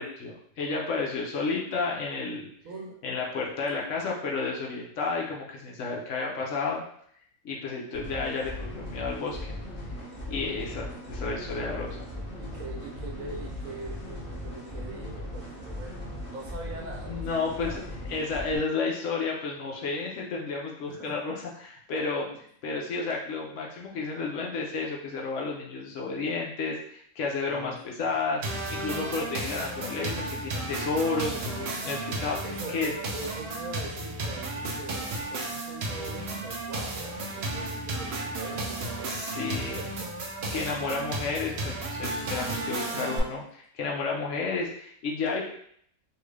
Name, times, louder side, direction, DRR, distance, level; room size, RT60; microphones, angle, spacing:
voice 1, 0.0-2.5 3.0-6.8 7.4-9.5 10.3-12.1 17.1-17.8 18.1-22.2 22.6-32.4 32.7-32.9 39.1-39.8 40.5-43.4 43.7-45.4, left 4 dB, 65° left, -2 dB, 0.9 m, -31 dB
voice 2, 2.6-3.0 10.4-10.5 12.4-17.8 20.9-21.1 21.9-22.4 27.5-28.0 32.4-40.3 42.8-43.2, right 3 dB, 75° right, 0 dB, 1.2 m, -42 dB
sound 1, 7.9-18.6, left 1 dB, 10° right, 1.0 m, -38 dB
sound 2, 28.4-43.2, right 2 dB, 60° right, 0.8 m, -33 dB
2.9 x 2.4 x 3.2 m, 0.65 s
omnidirectional pair, 1.4 m